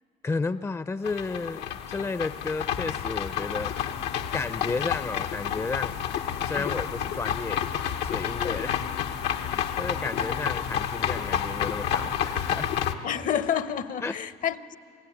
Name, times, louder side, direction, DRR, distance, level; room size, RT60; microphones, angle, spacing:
voice 1, 0.2-3.7 4.3-6.0 6.4-8.8 9.3-12.7 14.0-14.2, left 3 dB, 15° left, 13 dB, 0.5 m, -33 dB
sound 1, 1.0-12.9, left 9 dB, 90° left, 1.2 m, -30 dB
voice 2, 13.0-14.8, left 9 dB, 50° left, 14 dB, 0.8 m, -29 dB
28.0 x 17.0 x 10.0 m, 2.5 s
cardioid pair, 110°, 17 cm